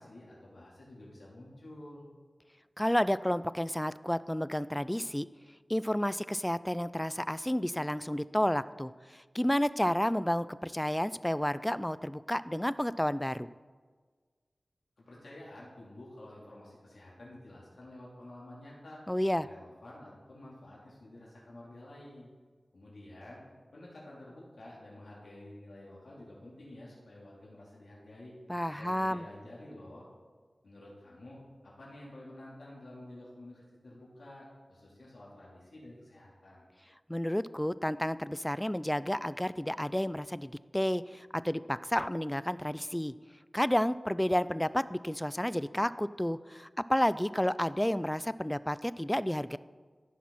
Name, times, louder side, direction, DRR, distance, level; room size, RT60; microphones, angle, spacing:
voice 1, 0.0-2.1 15.0-19.0 19.3-22.3 22.7-23.4 23.7-28.3 28.7-30.1 30.6-36.6, left 1 dB, 80° left, -6 dB, 3.4 m, -50 dB
voice 2, 2.8-5.3 5.7-13.5 19.1-19.5 28.5-29.2 37.1-43.1 43.5-49.6, equal, 10° left, 16 dB, 0.3 m, -31 dB
15.0 x 5.9 x 4.2 m, 1.5 s
cardioid pair, 45°, 0 cm